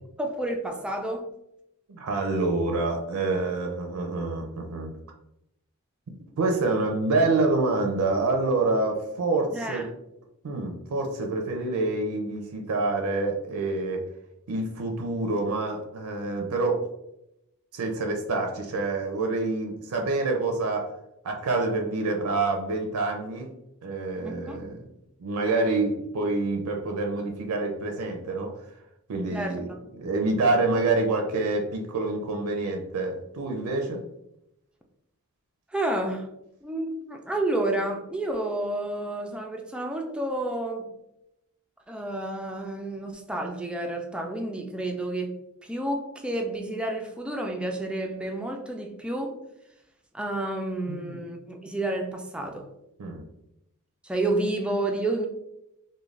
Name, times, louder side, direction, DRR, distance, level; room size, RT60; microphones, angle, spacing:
voice 1, 0.2-1.3 9.5-9.9 24.2-24.6 29.3-29.6 35.7-36.3 36.6-40.9 41.9-45.3 45.6-49.4 50.1-52.7 54.0-55.3, right 1 dB, 5° right, 2 dB, 0.3 m, -30 dB
voice 2, 1.9-4.9 6.1-9.8 10.4-14.0 14.5-16.8 17.7-20.9 21.2-23.5 23.8-24.8 25.2-28.5 29.1-29.7 30.0-34.0 50.9-51.2 53.0-53.2, right 3 dB, 75° right, 3 dB, 0.4 m, -27 dB
2.4 x 2.1 x 3.2 m, 0.84 s
head